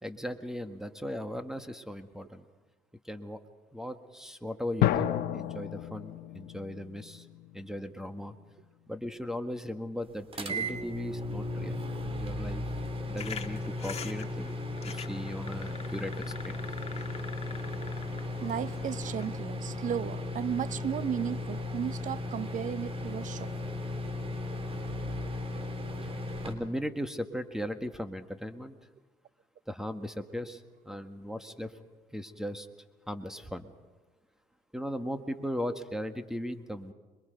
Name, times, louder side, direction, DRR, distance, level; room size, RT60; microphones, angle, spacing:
voice 1, 0.0-2.4 3.0-3.4 3.7-7.3 7.5-8.3 8.9-12.6 13.1-14.6 14.8-16.6 26.0-26.1 26.4-28.8 29.7-31.8 32.1-32.7 33.1-33.7 34.7-36.9, equal, 5° right, 1.7 m, -37 dB
sound 1, 4.8-8.3, left 12 dB, 75° left, 1.2 m, -31 dB
sound 2, 10.3-26.5, left 1 dB, 35° right, 3.6 m, -36 dB
sound 3, 13.2-19.3, left 6 dB, 40° left, 1.9 m, -45 dB
voice 2, 18.4-23.5, right 9 dB, 50° right, 0.8 m, -34 dB
26.5 x 23.0 x 5.3 m
supercardioid pair, 75°, 17 cm